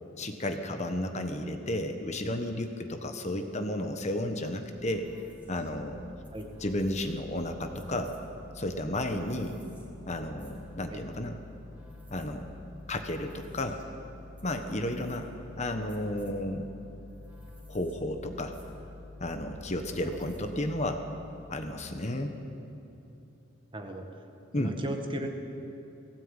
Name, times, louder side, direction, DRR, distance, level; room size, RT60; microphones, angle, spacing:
voice 1, 0.2-5.1 5.5-6.0 6.6-8.2 8.5-9.6 10.1-11.4 12.1-12.5 12.9-13.8 14.4-15.3 15.6-16.7 17.7-18.5 19.2-21.0 21.5-22.3 24.5-24.8, left 1 dB, 35° left, 6 dB, 1.3 m, -32 dB
sound 1, 4.7-21.2, left 2 dB, 5° right, 3.1 m, -49 dB
voice 2, 23.7-24.0 24.5-25.3, right 1 dB, 25° right, 4 dB, 1.6 m, -36 dB
19.0 x 16.5 x 9.0 m, 3.0 s
head